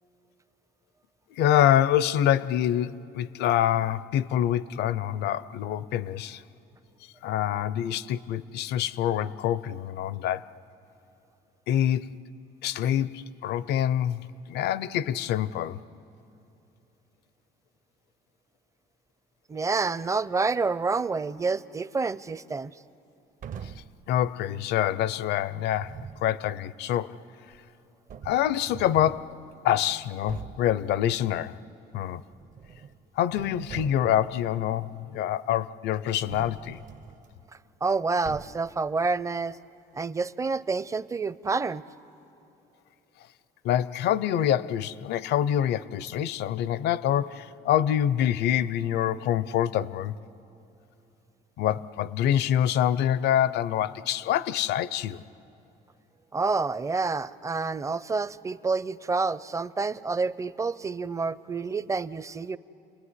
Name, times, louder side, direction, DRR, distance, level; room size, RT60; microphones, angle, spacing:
voice 1, 1.3-6.4 7.2-10.5 11.7-12.2 12.6-15.8 23.6-23.7 24.1-27.1 28.2-29.4 29.6-31.6 31.9-32.2 33.2-36.8 43.6-50.1 51.6-55.2, left 11 dB, 80° left, 0.7 m, -26 dB
voice 2, 19.5-22.7 37.8-39.6 40.0-41.8 56.3-62.6, right 4 dB, 20° right, 0.6 m, -28 dB
sound 1, 23.4-24.0 25.7-26.3 27.5-27.6 28.1-29.3 29.8-29.9 30.3-30.7 32.3-33.0 33.3-34.4 36.3-37.3 38.2-38.8, right 7 dB, 50° right, 0.9 m, -42 dB
29.0 x 21.0 x 9.8 m
cardioid pair, 110°, 17 cm